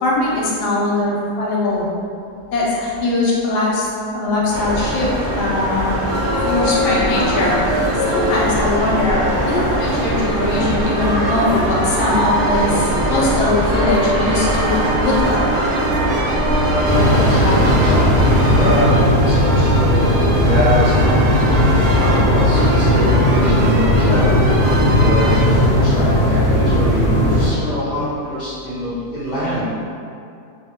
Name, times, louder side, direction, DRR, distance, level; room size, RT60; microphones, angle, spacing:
voice 1, 0.0-1.9 2.5-3.9 4.1-5.9 6.4-7.8 8.1-15.5, left 2 dB, 80° left, -5 dB, 1.2 m, -20 dB
sound 1, 4.5-18.8, equal, 15° right, 1.2 m, -21 dB
sound 2, 6.1-25.4, right 1 dB, 70° right, 1.0 m, -24 dB
voice 2, 16.6-18.1 18.5-21.4 21.9-24.4 25.0-29.7, equal, 45° right, -14 dB, 0.6 m, -24 dB
sound 3, 16.8-27.5, left 1 dB, 50° left, 0.6 m, -16 dB
2.7 x 2.5 x 2.8 m, 2.5 s
omnidirectional pair, 1.8 m